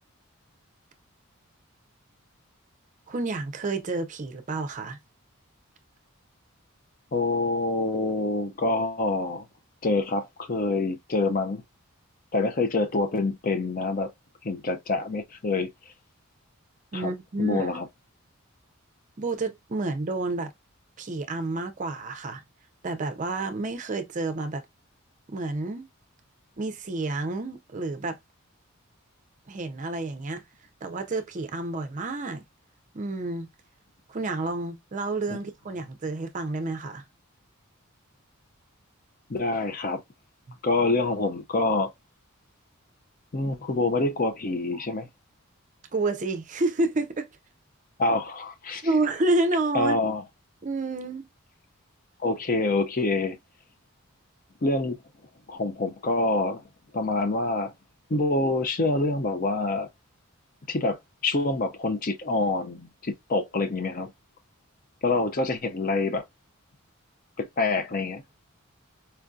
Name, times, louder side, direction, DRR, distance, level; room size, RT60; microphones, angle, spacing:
voice 1, 3.1-5.0 16.9-17.7 19.2-20.5 21.0-22.4 22.8-24.6 25.3-25.9 26.6-28.2 29.5-30.4 30.8-32.4 32.9-33.5 34.1-37.0 40.5-40.6 44.7-44.8 45.9-47.3 48.8-50.0 50.6-51.3, right 2 dB, 35° right, 0.5 m, -29 dB
voice 2, 7.1-9.4 9.8-11.6 12.3-14.1 14.4-15.7 16.9-17.1 17.4-17.8 39.3-40.0 40.6-41.9 43.3-45.1 48.0-48.8 49.7-50.2 52.2-53.4 54.6-55.0 55.5-56.6 56.9-57.7 58.1-59.9 60.7-64.1 65.0-66.2 67.4-68.2, left 2 dB, 40° left, 0.5 m, -26 dB
4.3 x 2.6 x 2.2 m
head